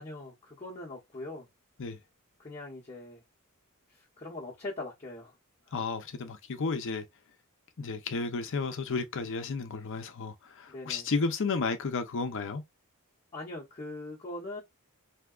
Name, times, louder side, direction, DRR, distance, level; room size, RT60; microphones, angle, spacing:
voice 1, 0.0-1.5 2.4-3.2 3.9-5.3 5.7-5.8 10.7-11.1 13.3-14.6, left 2 dB, 25° left, 0.9 m, -41 dB
voice 2, 5.7-7.1 7.8-12.6, left 4 dB, 60° left, 0.6 m, -32 dB
3.4 x 2.8 x 2.3 m
head